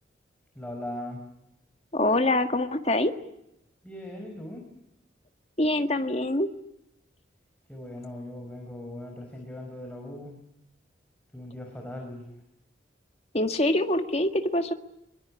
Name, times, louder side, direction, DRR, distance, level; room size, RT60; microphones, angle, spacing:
voice 1, 0.5-1.2 3.8-4.7 7.7-10.4 11.3-12.3, left 1 dB, 5° left, 1 dB, 5.1 m, -39 dB
voice 2, 1.9-3.1 5.6-6.5 13.3-14.7, left 1 dB, 35° left, 7 dB, 1.8 m, -24 dB
23.5 x 23.0 x 9.9 m, 0.83 s
head